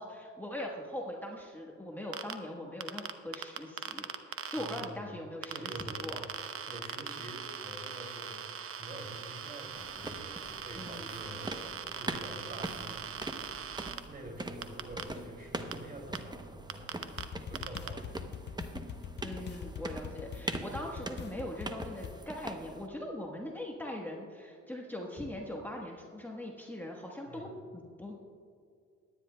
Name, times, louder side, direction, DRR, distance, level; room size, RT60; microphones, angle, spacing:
voice 1, 0.0-5.7 6.0-6.2 10.7-11.1 19.2-28.2, left 1 dB, 5° left, -1 dB, 1.2 m, -41 dB
sound 1, 2.1-2.3 2.8-4.8 5.4-14.0 14.6-15.0 15.7-15.8 16.1-16.2 16.7-17.2 17.6-17.9, right 8 dB, 45° right, 0.8 m, -40 dB
voice 2, 4.5-5.2 5.5-13.6 14.1-16.9 17.5-18.2 19.0-19.3 20.7-20.9 27.3-27.5, right 1 dB, 30° right, 2 dB, 2.5 m, -47 dB
sound 2, 9.7-22.9, right 2 dB, 15° right, 0.7 m, -43 dB
sound 3, 17.2-22.2, left 7 dB, 35° left, 0.5 m, -43 dB
23.0 x 10.0 x 2.2 m, 2.3 s
cardioid pair, 90°, 30 cm